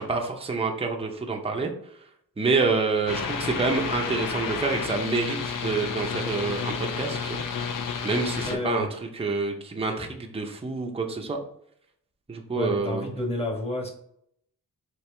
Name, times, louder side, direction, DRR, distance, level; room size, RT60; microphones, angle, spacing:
voice 1, 0.0-1.7 2.4-7.4 8.0-8.9 9.2-11.4 12.3-13.1, right 4 dB, 15° right, 2 dB, 0.6 m, -27 dB
sound 1, 3.1-8.6, left 6 dB, 70° left, 0.7 m, -31 dB
voice 2, 8.4-8.9 12.5-13.9, left 1 dB, 15° left, 0 dB, 1.3 m, -29 dB
4.5 x 3.0 x 3.3 m, 0.71 s
cardioid pair, 85°, 34 cm